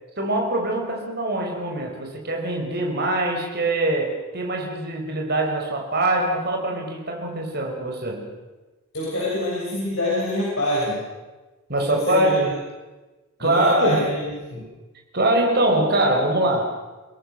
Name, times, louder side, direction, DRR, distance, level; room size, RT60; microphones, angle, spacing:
voice 1, 0.2-8.3 11.7-12.5 13.4-14.0 15.1-16.7, right 1 dB, 45° right, 2 dB, 4.7 m, -23 dB
voice 2, 8.9-11.0 11.9-12.3 13.4-14.7, left 1 dB, 60° left, -6 dB, 7.5 m, -25 dB
28.5 x 18.0 x 6.6 m, 1.2 s
head